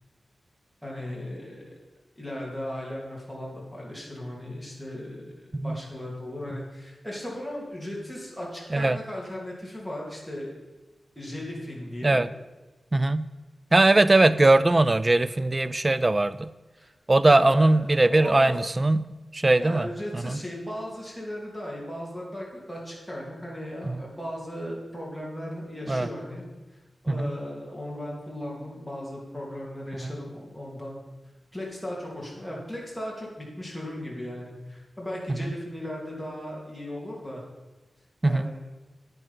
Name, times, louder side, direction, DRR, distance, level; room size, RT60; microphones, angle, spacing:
voice 1, 0.8-1.7 2.2-10.5 11.1-12.2 16.8-16.9 17.3-17.9 18.1-18.5 19.6-26.5 27.0-31.0 31.5-37.4 38.2-38.6, left 1 dB, ahead, -3 dB, 2.9 m, -37 dB
voice 2, 12.9-13.3 13.7-16.5 17.1-19.1 19.3-19.9 20.1-20.4 23.8-23.9 25.9-26.1 27.1-27.3 30.0-30.1 35.4-35.5 38.2-38.5, right 2 dB, 25° right, 15 dB, 0.3 m, -21 dB
9.4 x 9.4 x 5.7 m, 1.2 s
wide cardioid pair, 155°, 0 cm